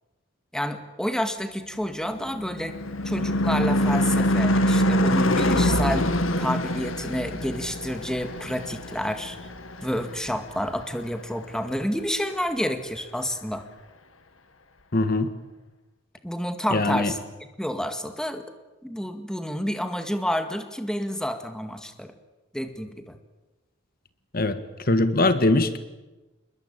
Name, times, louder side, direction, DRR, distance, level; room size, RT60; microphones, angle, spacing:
voice 1, 0.5-2.8 3.1-6.1 6.4-9.4 9.8-13.6 16.2-17.2 17.6-18.5 18.8-22.1 22.5-23.2, equal, 5° left, 7 dB, 2.0 m, -29 dB
Car passing by / Truck / Engine, 1.9-10.6, left 1 dB, 75° left, 2.1 m, -24 dB
voice 2, 14.9-15.3 16.7-17.1 24.3-25.8, left 2 dB, 50° left, 11 dB, 1.7 m, -22 dB
28.0 x 21.5 x 9.1 m, 1.1 s
head